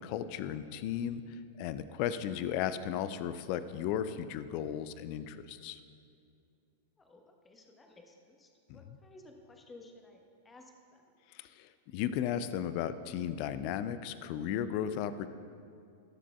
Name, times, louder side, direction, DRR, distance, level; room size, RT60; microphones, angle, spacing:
voice 1, 0.0-5.8 8.7-9.0 11.3-15.3, left 9 dB, 45° left, 13 dB, 0.4 m, -35 dB
voice 2, 7.0-10.2 10.4-11.0, left 2 dB, 15° left, 3 dB, 1.2 m, -56 dB
19.5 x 7.3 x 2.4 m, 2.5 s
figure-of-eight pair, 95°, 0 cm